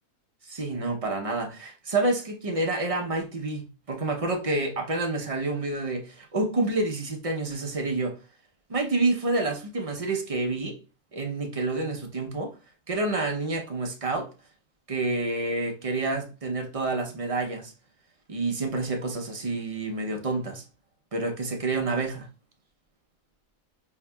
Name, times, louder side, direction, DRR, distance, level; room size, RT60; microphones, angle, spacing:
voice 1, 0.4-8.2 8.7-10.8 11.1-12.5 12.9-14.3 14.9-17.7 18.3-20.6 21.1-22.3, right 2 dB, 40° right, 0.5 m, -28 dB
5.6 x 2.7 x 2.2 m
omnidirectional pair, 1.5 m